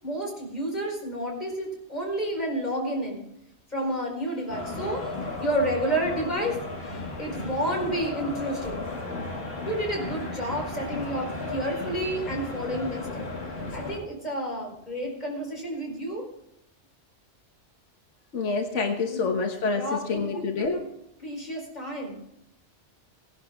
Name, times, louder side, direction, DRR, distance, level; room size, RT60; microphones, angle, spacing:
voice 1, 0.0-3.2 3.7-8.8 9.7-13.3 13.7-16.2 19.1-19.3 19.7-20.9 21.2-22.2, right 1 dB, 35° left, -1 dB, 5.0 m, -30 dB
sound 1, 4.5-14.0, left 2 dB, 60° left, 2.7 m, -35 dB
voice 2, 18.3-20.8, left 4 dB, 90° left, 4 dB, 1.5 m, -27 dB
18.5 x 11.5 x 3.7 m, 0.80 s
omnidirectional pair, 1.2 m